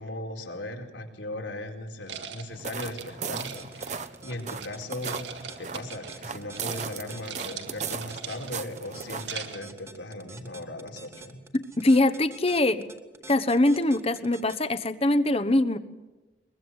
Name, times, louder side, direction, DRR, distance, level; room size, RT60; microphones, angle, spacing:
voice 1, 0.0-5.3 5.6-11.4, left 1 dB, 85° left, 1 dB, 4.2 m, -38 dB
sound 1, 2.1-4.7 5.0-6.3 6.5-6.9 7.1-8.7 9.1-9.7, right 6 dB, 75° right, 2.9 m, -40 dB
sound 2, 2.5-9.5, right 5 dB, 40° right, 1.0 m, -38 dB
sound 3, 3.4-14.6, right 2 dB, 15° right, 1.7 m, -46 dB
voice 2, 11.5-12.9 13.3-15.8, left 1 dB, 30° left, 11 dB, 1.1 m, -23 dB
23.0 x 22.5 x 8.1 m, 1.1 s
head